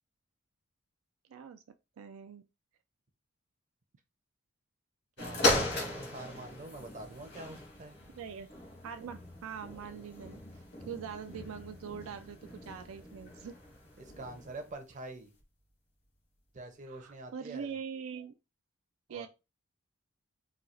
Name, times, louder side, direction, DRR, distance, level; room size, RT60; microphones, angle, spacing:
voice 1, 1.3-1.6 2.0-2.4 8.1-8.5 8.8-10.4 10.9-13.6 16.9-18.3 19.1-19.3, right 7 dB, 85° right, 0.4 m, -43 dB
sound 1, 5.2-14.7 15.4-15.5, left 2 dB, 55° left, 1.5 m, -37 dB
voice 2, 5.2-8.0 14.0-15.3 16.5-17.7 19.1-19.3, right 2 dB, 35° right, 0.6 m, -45 dB
4.2 x 2.4 x 2.5 m
head